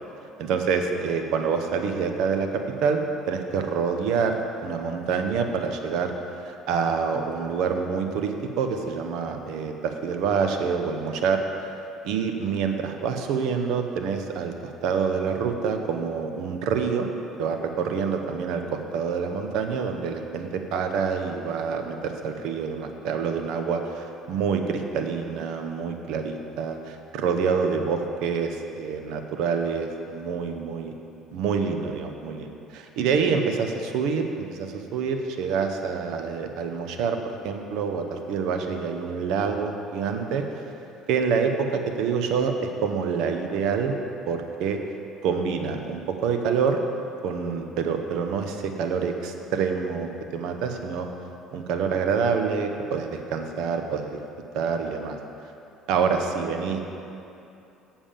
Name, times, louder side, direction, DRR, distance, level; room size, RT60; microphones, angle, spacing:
voice 1, 0.4-3.0 3.3-6.1 6.5-11.4 12.0-17.1 17.4-30.9 31.3-37.2 37.4-40.6 41.1-42.5 42.8-43.9 44.3-44.8 45.2-46.8 47.2-51.1 51.5-54.2 54.5-55.2 55.9-56.8, right 6 dB, 70° right, 5 dB, 0.7 m, -27 dB
7.1 x 7.1 x 5.2 m, 2.7 s
hypercardioid pair, 65°, 0 cm